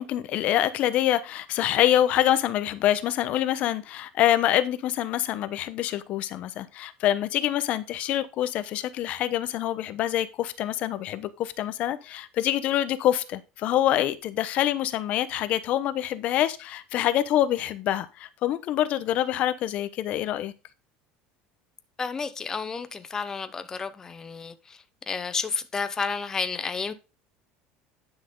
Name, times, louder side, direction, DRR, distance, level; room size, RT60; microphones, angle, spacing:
voice 1, 0.0-20.5, left 12 dB, 45° left, 0.9 m, -26 dB
voice 2, 22.0-26.9, left 5 dB, 20° left, 0.9 m, -31 dB
10.0 x 6.1 x 3.8 m
cardioid pair, 150°, 3 cm